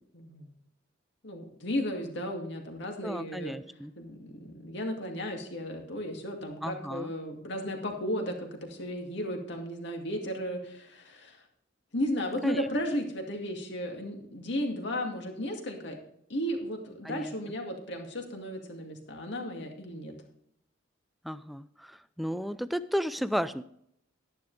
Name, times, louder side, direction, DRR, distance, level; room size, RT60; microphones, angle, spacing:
voice 1, 0.1-0.5 1.2-3.6 4.0-11.4 11.9-16.0 16.3-20.1, equal, 65° left, 2 dB, 2.3 m, -34 dB
voice 2, 3.0-3.9 6.6-7.1 12.4-12.7 17.0-17.3 21.2-23.6, equal, ahead, 14 dB, 0.4 m, -33 dB
12.5 x 10.5 x 3.3 m, 0.71 s
head